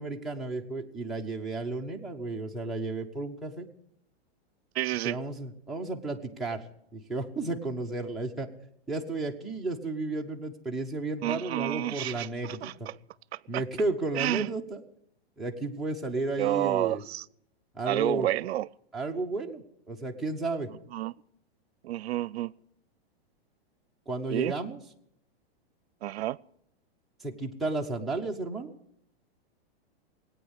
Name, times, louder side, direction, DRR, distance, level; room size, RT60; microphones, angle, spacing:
voice 1, 0.0-3.7 5.0-6.6 6.9-8.5 8.9-12.7 13.5-14.8 15.4-17.0 17.7-18.3 18.9-20.7 24.1-24.8 27.2-28.7, right 3 dB, ahead, 0.7 m, -33 dB
voice 2, 4.7-5.2 11.2-12.9 13.3-13.6 14.2-14.5 16.4-17.2 17.9-18.7 20.9-21.1 21.8-22.5 24.3-24.5 26.0-26.4, right 14 dB, 80° right, 0.5 m, -30 dB
18.0 x 9.0 x 8.0 m
supercardioid pair, 165°, 31 cm